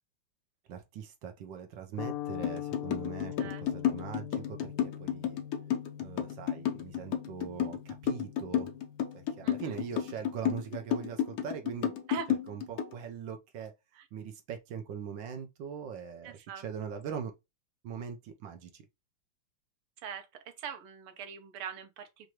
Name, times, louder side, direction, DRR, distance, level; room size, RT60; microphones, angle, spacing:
voice 1, 0.7-5.4 6.0-8.7 9.1-12.0 12.3-13.7 14.1-17.3 17.8-18.8, right 7 dB, 70° right, 1.3 m, -41 dB
sound 1, 2.0-10.3, left 11 dB, 90° left, 1.5 m, -43 dB
sound 2, 2.4-12.9, left 9 dB, 70° left, 0.9 m, -31 dB
voice 2, 3.4-3.9 9.4-9.8 12.1-12.3 14.0-14.1 16.2-16.6 20.0-22.3, right 7 dB, 85° right, 1.7 m, -43 dB
4.7 x 2.6 x 2.9 m
omnidirectional pair, 2.4 m